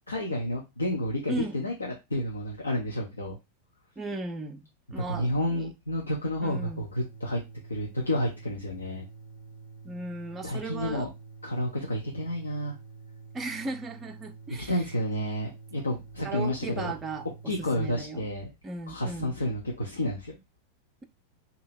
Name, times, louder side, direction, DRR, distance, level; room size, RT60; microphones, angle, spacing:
voice 1, 0.1-3.4 5.0-7.4 7.7-9.0 10.4-11.1 11.4-12.8 14.5-16.9 17.5-18.5 18.9-20.4, left 1 dB, 75° left, 0.8 m, -30 dB
voice 2, 4.0-5.7 6.4-6.9 9.8-11.1 13.3-14.7 16.2-18.2 18.6-19.4, right 2 dB, 15° right, 0.5 m, -36 dB
sound 1, 6.6-18.0, right 5 dB, 60° left, 1.2 m, -48 dB
2.8 x 2.7 x 4.4 m
figure-of-eight pair, 90°, 0 cm